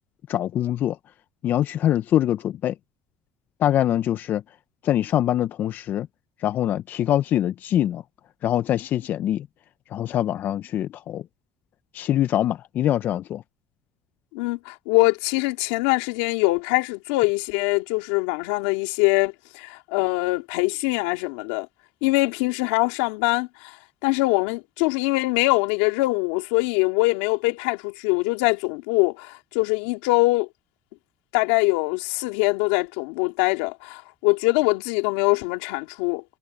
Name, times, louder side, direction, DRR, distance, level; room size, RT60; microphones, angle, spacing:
voice 1, 0.3-1.0 1.4-2.7 3.6-4.4 4.8-6.1 6.4-8.0 8.4-9.5 9.9-11.2 11.9-13.4, left 11 dB, 55° left, 0.7 m, -23 dB
voice 2, 14.3-21.7 22.0-23.8 24.0-30.5 31.3-36.2, left 23 dB, 85° left, 2.8 m, -23 dB
supercardioid pair, 90°, 4 cm